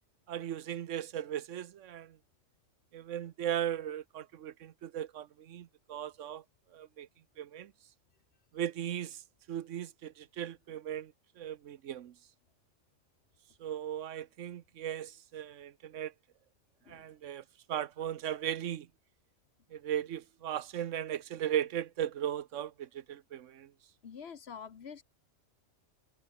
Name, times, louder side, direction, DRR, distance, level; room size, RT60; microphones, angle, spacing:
voice 1, 0.3-2.2 2.9-6.4 6.7-7.1 7.4-7.7 8.5-9.2 9.5-12.1 13.6-16.1 16.9-18.9 19.7-23.7, right 10 dB, 90° right, 1.1 m, -37 dB
voice 2, 24.0-25.0, left 7 dB, 60° left, 1.3 m, -46 dB
omnidirectional pair, 1.2 m